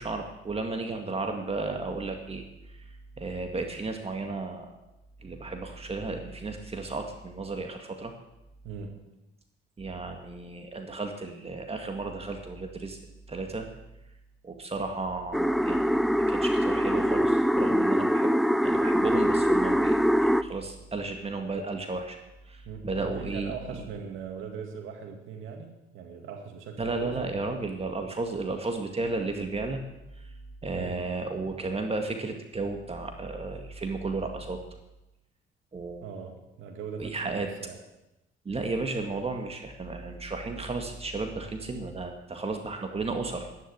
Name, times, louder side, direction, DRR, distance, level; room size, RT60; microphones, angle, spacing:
voice 1, 0.0-2.4 2.7-2.8 3.2-4.8 5.2-8.1 9.8-13.0 13.3-13.7 14.4-15.9 16.2-18.3 18.6-22.2 22.5-23.8 26.8-29.8 30.2-30.3 30.6-34.6 35.7-36.0 37.0-37.5 38.5-43.5, right 3 dB, 30° right, 4 dB, 2.0 m, -33 dB
voice 2, 8.6-9.1 22.7-27.4 30.7-31.1 36.0-37.8, right 6 dB, 90° right, 4 dB, 2.3 m, -40 dB
sound 1, 15.3-20.4, equal, ahead, 0.5 m, -23 dB
11.5 x 10.5 x 8.6 m, 0.92 s
cardioid pair, 90°, 20 cm